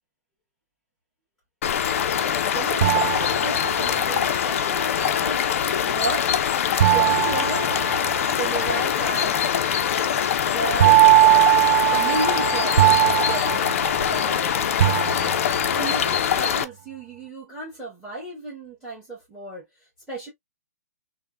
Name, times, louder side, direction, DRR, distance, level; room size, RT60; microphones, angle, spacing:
sound 1, 1.6-16.6, left 9 dB, 55° left, 0.4 m, -23 dB
voice 1, 2.4-2.9 3.4-5.4 5.8-6.4 6.8-7.7 8.2-9.5 10.5-11.5 11.9-13.7 14.1-14.7 15.7-19.6 20.1-20.3, right 2 dB, ahead, 1.3 m, -33 dB
sound 2, 2.8-4.0 6.8-8.4 10.8-14.4 14.8-15.7, right 16 dB, 55° right, 0.4 m, -19 dB
3.3 x 2.1 x 2.2 m
hypercardioid pair, 155°, 9 cm